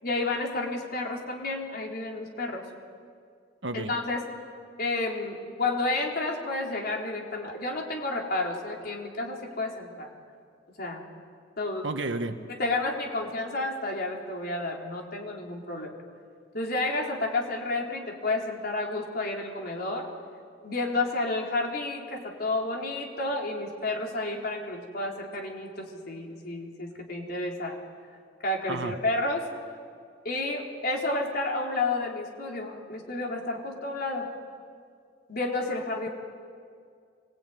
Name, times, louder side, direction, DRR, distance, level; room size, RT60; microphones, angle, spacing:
voice 1, 0.0-2.7 3.7-4.3 4.8-10.1 10.8-11.0 11.6-11.9 12.5-15.9 16.5-20.1 20.6-27.8 28.4-29.5 30.2-34.3 35.3-36.1, left 2 dB, 55° left, 0 dB, 4.2 m, -31 dB
voice 2, 11.8-12.4 28.7-28.9, right 2 dB, 85° right, 7 dB, 1.6 m, -31 dB
26.5 x 22.0 x 9.4 m, 2.2 s
head